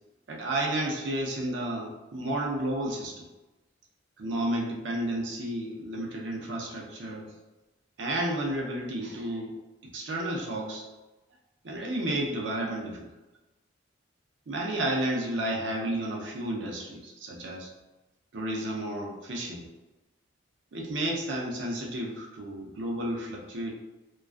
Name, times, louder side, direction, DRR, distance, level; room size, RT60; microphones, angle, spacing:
voice 1, 0.3-3.3 4.2-7.3 8.0-9.5 9.9-10.9 11.6-13.0 14.5-17.7 18.3-19.7 20.7-23.7, right 1 dB, 65° right, -1 dB, 0.5 m, -32 dB
2.3 x 2.2 x 2.4 m, 1.1 s
head